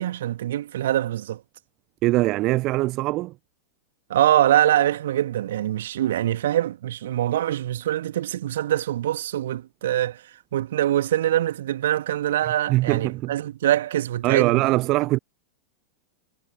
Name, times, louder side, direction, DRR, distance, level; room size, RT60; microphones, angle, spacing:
voice 1, 0.0-1.4 4.1-10.2 10.5-14.7, right 12 dB, 60° right, 2.5 m, -24 dB
voice 2, 2.0-3.3 12.7-13.3 14.2-15.2, right 19 dB, 40° right, 0.4 m, -22 dB
figure-of-eight pair, 90°, 0 cm